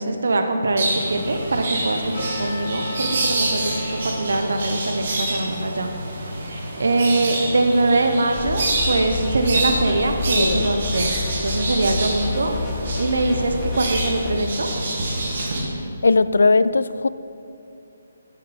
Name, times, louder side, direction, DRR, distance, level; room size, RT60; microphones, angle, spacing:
voice 1, 0.0-5.9 6.8-12.5 13.0-14.7, right 2 dB, 80° right, 5 dB, 1.0 m, -22 dB
sound 1, 0.8-15.6, right 2 dB, 55° right, 1.8 m, -27 dB
sound 2, 2.1-9.0 9.3-9.4 9.9-10.0 10.5-10.6, left 1 dB, 65° left, 1.6 m, -38 dB
sound 3, 8.3-14.3, left 4 dB, 15° left, 0.8 m, -30 dB
voice 2, 10.4-10.7 15.7-17.1, left 3 dB, 90° left, 15 dB, 0.3 m, -19 dB
10.5 x 7.3 x 4.2 m, 2.6 s
hypercardioid pair, 165°, 0 cm